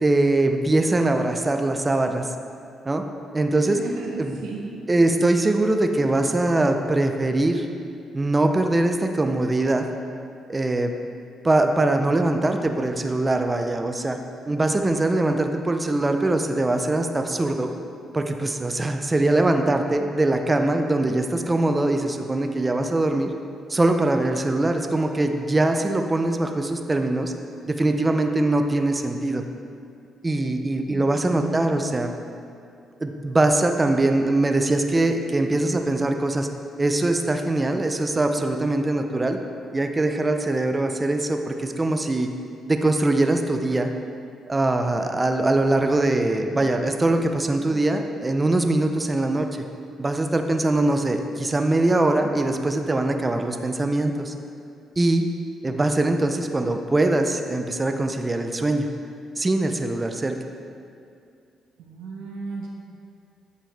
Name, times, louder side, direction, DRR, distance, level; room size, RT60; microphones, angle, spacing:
voice 1, 0.0-2.3 2.9-3.0 3.3-3.8 4.2-4.3 4.9-7.7 8.1-9.9 10.5-10.9 11.4-14.2 14.5-17.7 18.1-23.3 23.7-27.3 27.7-29.4 30.2-32.1 33.0-36.5 36.8-39.4 39.7-42.3 42.7-43.9 44.5-49.6 50.0-54.3 55.0-55.2 55.6-58.9 59.4-60.4, right 2 dB, 20° right, 5 dB, 0.6 m, -22 dB
voice 2, 3.5-4.8 30.9-31.9 61.8-62.7, right 3 dB, 85° right, -3 dB, 1.3 m, -36 dB
9.0 x 6.8 x 3.4 m, 2.4 s
cardioid pair, 90°, 0 cm